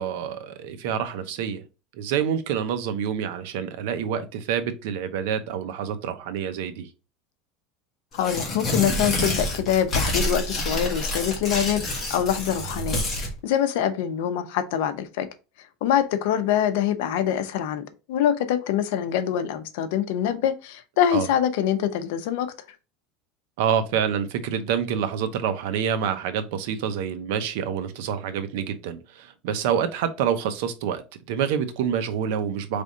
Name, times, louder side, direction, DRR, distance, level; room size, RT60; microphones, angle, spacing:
voice 1, 0.0-1.6 1.9-6.9 21.1-21.3 23.6-31.0 31.3-32.8, right 8 dB, 70° right, 0.7 m, -27 dB
voice 2, 8.1-11.8 12.1-15.3 15.8-22.5, left 9 dB, 70° left, 0.7 m, -24 dB
Tearing, 8.1-13.3, left 1 dB, 20° left, 1.8 m, -27 dB
4.1 x 3.5 x 3.7 m
supercardioid pair, 160°, 0 cm